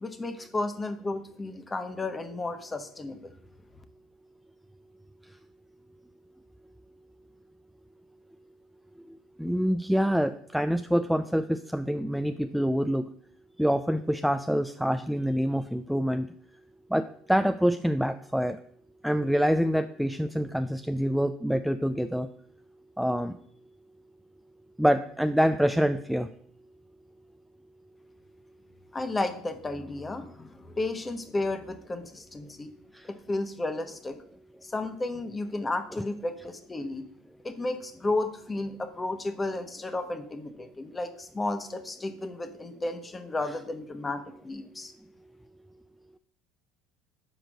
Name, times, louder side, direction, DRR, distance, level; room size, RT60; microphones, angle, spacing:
voice 1, 0.0-3.3 28.9-32.7 33.1-34.2 34.6-37.0 37.4-44.9, left 2 dB, 20° left, 8 dB, 1.1 m, -33 dB
voice 2, 9.4-13.1 13.6-16.3 16.9-18.6 19.0-22.3 23.0-23.4 24.8-26.3 32.9-33.1, equal, ahead, 9 dB, 0.4 m, -26 dB
6.1 x 5.0 x 6.1 m, 0.62 s
hypercardioid pair, 75°, 0 cm